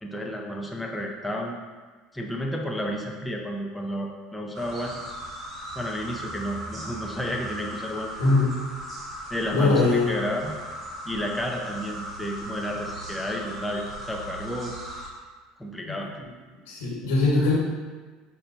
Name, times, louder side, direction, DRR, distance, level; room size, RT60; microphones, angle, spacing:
voice 1, 0.0-1.6 2.1-5.0 5.8-8.1 9.3-10.6 11.1-14.7 15.6-16.1, equal, 5° left, 0 dB, 0.5 m, -31 dB
sound 1, 4.5-15.1, right 1 dB, 30° right, 1.1 m, -38 dB
voice 2, 8.2-8.5 9.5-10.1 15.8-16.0 16.7-17.5, left 3 dB, 80° left, -5 dB, 1.4 m, -21 dB
5.7 x 2.6 x 2.7 m, 1.4 s
supercardioid pair, 90°, 0 cm